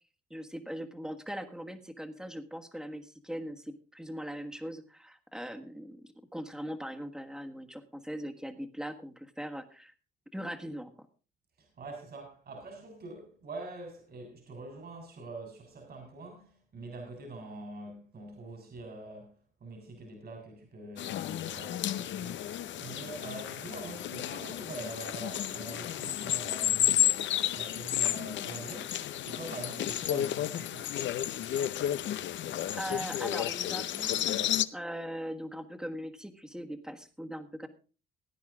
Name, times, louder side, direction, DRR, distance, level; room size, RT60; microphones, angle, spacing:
voice 1, 0.3-9.9 10.3-10.9 32.7-37.7, equal, 5° right, 1.5 m, -40 dB
voice 2, 11.6-19.3 19.6-30.9, right 2 dB, 50° right, 3.5 m, -45 dB
sound 1, 21.0-34.6, left 11 dB, 70° left, 0.7 m, -32 dB
17.0 x 9.3 x 3.6 m
cardioid pair, 90°, 20 cm